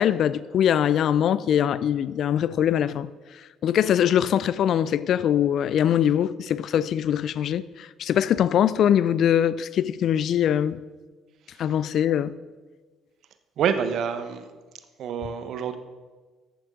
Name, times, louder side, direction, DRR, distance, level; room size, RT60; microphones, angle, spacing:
voice 1, 0.0-3.1 3.6-10.8 11.6-12.4, left 9 dB, 60° left, 0.4 m, -22 dB
voice 2, 13.6-14.5 15.0-15.8, right 7 dB, 60° right, 1.0 m, -27 dB
14.0 x 8.7 x 3.8 m
hypercardioid pair, 55°, 0 cm